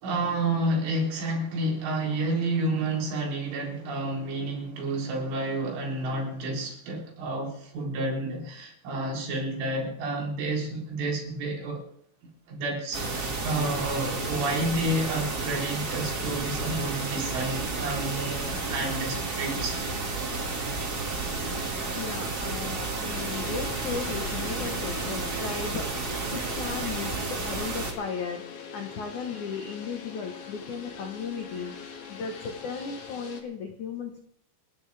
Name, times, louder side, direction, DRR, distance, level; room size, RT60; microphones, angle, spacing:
voice 1, 0.0-11.8 12.5-19.8 26.1-26.2, right 2 dB, 75° right, 6.3 m, -30 dB
sound 1, 12.9-27.9, right 3 dB, 40° right, 1.4 m, -31 dB
voice 2, 21.9-25.9 26.3-28.4 28.7-31.7 32.1-34.2, left 5 dB, 75° left, 1.7 m, -35 dB
sound 2, 23.1-33.4, left 6 dB, 55° left, 2.4 m, -43 dB
29.5 x 10.5 x 3.5 m
omnidirectional pair, 5.7 m